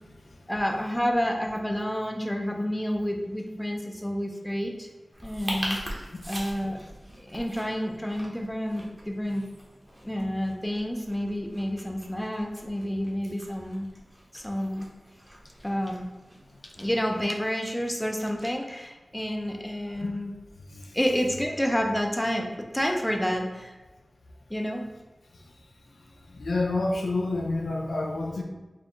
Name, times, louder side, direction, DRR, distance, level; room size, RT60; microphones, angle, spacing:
voice 1, 0.5-4.9 5.2-5.8 6.3-6.8 7.2-9.4 10.0-13.9 14.3-14.9 15.6-16.0 16.6-20.3 20.9-23.8 24.5-24.8, equal, 10° left, 2 dB, 0.5 m, -29 dB
sound 1, 5.1-17.3, equal, 20° right, 0.9 m, -42 dB
voice 2, 20.6-21.0 25.3-25.5 25.9-28.4, left 2 dB, 85° left, 0 dB, 0.4 m, -30 dB
4.2 x 2.4 x 3.0 m, 1.2 s
wide cardioid pair, 65°, 0 cm